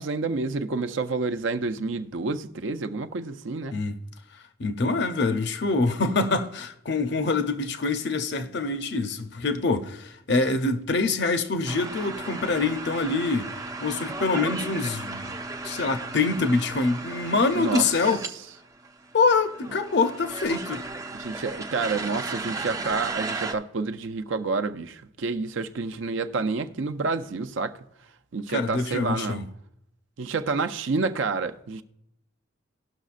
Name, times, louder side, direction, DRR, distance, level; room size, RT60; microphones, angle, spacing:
voice 1, 0.0-3.8 17.5-17.9 21.1-27.8 28.3-29.4 30.2-31.8, right 4 dB, 70° right, 0.5 m, -29 dB
voice 2, 4.6-13.5 13.8-15.4 15.6-18.2 19.1-20.9 28.5-29.4, left 3 dB, 55° left, 0.6 m, -25 dB
sound 1, 11.7-18.3 18.5-18.6 18.8-23.5, right 3 dB, 15° right, 0.4 m, -35 dB
18.5 x 6.3 x 2.5 m
head